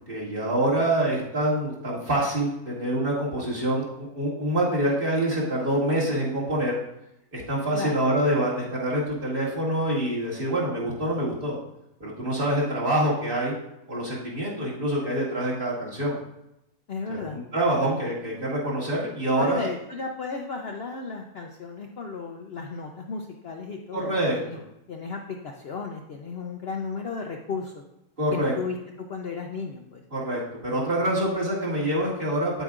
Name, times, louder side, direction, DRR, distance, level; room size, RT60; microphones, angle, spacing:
voice 1, 0.1-6.8 7.3-11.6 12.0-13.5 13.9-16.2 17.1-19.7 23.9-24.6 28.2-28.5 30.1-32.6, right 1 dB, 35° right, -6 dB, 2.4 m, -26 dB
voice 2, 16.9-17.4 19.4-24.6 24.9-27.8 28.3-28.8 29.1-30.0, left 4 dB, 55° left, 2 dB, 0.7 m, -34 dB
9.2 x 8.1 x 2.5 m, 0.86 s
omnidirectional pair, 1.6 m